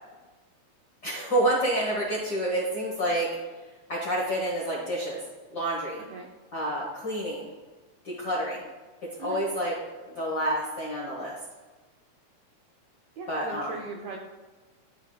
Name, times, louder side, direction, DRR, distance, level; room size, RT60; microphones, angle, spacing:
voice 1, 1.0-3.3 3.9-5.2 5.5-6.0 6.5-7.5 8.0-8.6 9.2-9.7 10.1-11.3 13.3-13.8, right 1 dB, 55° left, -4 dB, 1.1 m, -28 dB
voice 2, 13.2-14.2, right 4 dB, 75° right, 1 dB, 1.5 m, -39 dB
11.5 x 5.3 x 2.3 m, 1.3 s
omnidirectional pair, 3.5 m